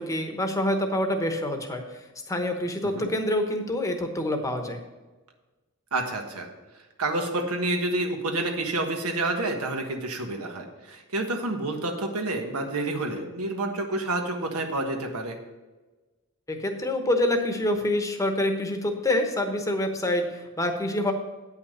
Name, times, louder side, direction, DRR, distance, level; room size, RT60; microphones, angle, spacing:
voice 1, 0.0-1.8 2.3-4.8 16.5-21.1, left 1 dB, 15° left, 5 dB, 1.0 m, -26 dB
voice 2, 5.9-6.5 7.0-15.4, right 2 dB, 85° right, 3 dB, 1.4 m, -29 dB
9.1 x 5.7 x 6.6 m, 1.2 s
head